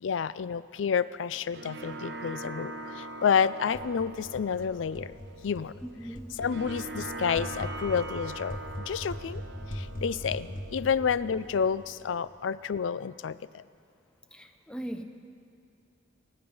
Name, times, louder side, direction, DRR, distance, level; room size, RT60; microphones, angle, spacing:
voice 1, 0.0-5.1 5.4-5.7 6.4-9.4 9.7-13.6, left 6 dB, 85° left, 17 dB, 0.4 m, -29 dB
sound 1, 1.2-12.2, right 2 dB, 65° right, 1.0 m, -42 dB
sound 2, 3.7-12.4, equal, 50° left, 1.4 m, -41 dB
voice 2, 6.0-6.4 14.3-15.0, right 1 dB, 5° left, 6 dB, 0.8 m, -39 dB
27.0 x 9.6 x 5.4 m, 2.6 s
head